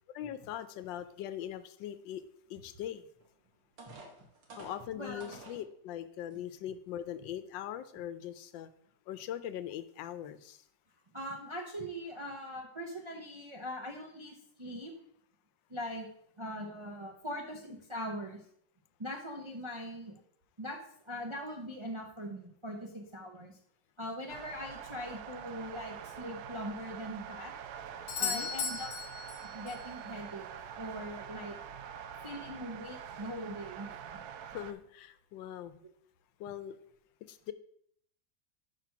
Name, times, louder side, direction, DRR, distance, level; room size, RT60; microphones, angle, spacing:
voice 1, 0.1-2.2 2.5-3.0 4.6-8.7 9.1-10.6 28.2-28.5 34.4-35.8 36.4-36.8 37.3-37.5, left 11 dB, 85° left, 13 dB, 1.3 m, -41 dB
sound 1, 3.2-3.3 3.8-5.6 6.3-6.4 6.9-7.1, right 2 dB, 90° right, 2.2 m, -50 dB
voice 2, 4.9-5.3 11.1-14.9 15.7-16.1 16.4-18.4 19.0-20.1 20.6-20.8 21.0-23.6 24.0-27.5 28.2-28.9 29.4-30.5 30.8-31.5 32.2-33.9, equal, 35° right, 0 dB, 0.4 m, -41 dB
sound 2, 24.3-34.7, right 8 dB, 70° right, 1.0 m, -45 dB
Doorbell, 28.1-29.9 34.0-34.1, left 5 dB, 55° left, 1.3 m, -36 dB
5.8 x 5.0 x 5.9 m, 0.67 s
omnidirectional pair, 2.0 m